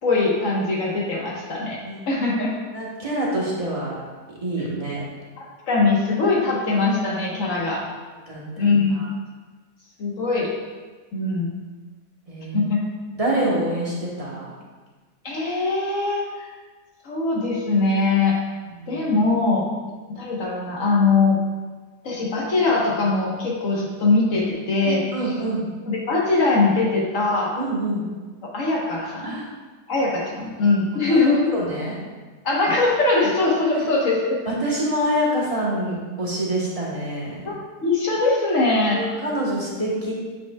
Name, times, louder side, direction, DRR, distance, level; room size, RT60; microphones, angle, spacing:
voice 1, 0.0-1.8 2.1-2.5 5.7-7.8 8.6-9.1 10.0-10.5 11.1-11.6 12.5-12.8 13.5-13.6 15.2-16.5 17.0-18.4 18.9-19.7 20.1-21.4 22.0-25.0 25.9-27.5 28.4-29.4 29.9-31.5 32.4-34.4 37.4-37.6 37.8-39.0, left 3 dB, 50° left, -3 dB, 1.4 m, -21 dB
voice 2, 2.7-4.0 4.4-5.0 7.8-7.9 8.3-8.7 8.9-9.0 12.3-12.6 13.1-14.5 18.7-19.0 24.8-25.6 27.6-28.1 29.2-29.5 31.1-32.0 33.7-33.9 34.4-37.4 38.9-40.1, right 1 dB, 25° right, -5 dB, 1.1 m, -26 dB
8.1 x 5.8 x 2.3 m, 1.3 s
omnidirectional pair, 1.8 m